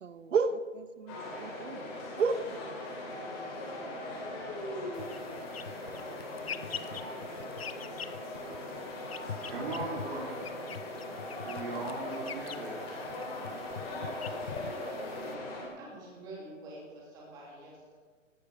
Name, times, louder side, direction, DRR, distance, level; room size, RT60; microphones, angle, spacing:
voice 1, 0.0-1.8 2.2-2.4, right 5 dB, 70° right, 12 dB, 1.3 m, -31 dB
sound 1, 1.1-15.6, left 1 dB, 15° left, 2.8 m, -40 dB
sound 2, 4.9-15.3, left 7 dB, 50° left, 0.7 m, -45 dB
voice 2, 9.5-10.4 11.4-12.8, right 2 dB, 50° right, -4 dB, 3.4 m, -38 dB
voice 3, 13.9-14.6 15.8-17.9, right 1 dB, 10° right, -4 dB, 2.6 m, -48 dB
16.0 x 13.5 x 4.9 m, 1.5 s
hypercardioid pair, 175°, 39 cm